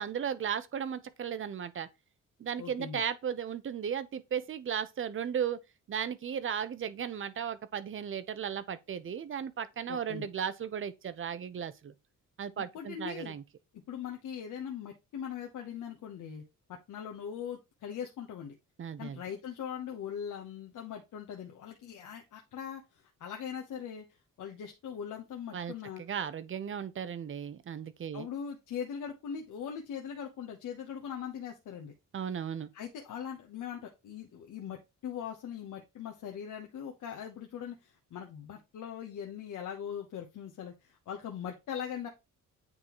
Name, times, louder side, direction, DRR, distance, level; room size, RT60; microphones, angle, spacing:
voice 1, 0.0-1.9 2.4-5.6 5.9-11.9 12.4-13.4 18.8-19.2 25.5-25.7 26.0-28.3 32.1-32.7, right 8 dB, 40° right, 0.7 m, -35 dB
voice 2, 2.6-3.0 9.9-10.3 12.6-13.3 13.9-16.4 16.7-18.6 19.0-24.1 24.4-26.0 28.1-31.9 32.7-42.1, left 8 dB, 70° left, 1.0 m, -41 dB
8.9 x 3.9 x 3.0 m
cardioid pair, 120°, 31 cm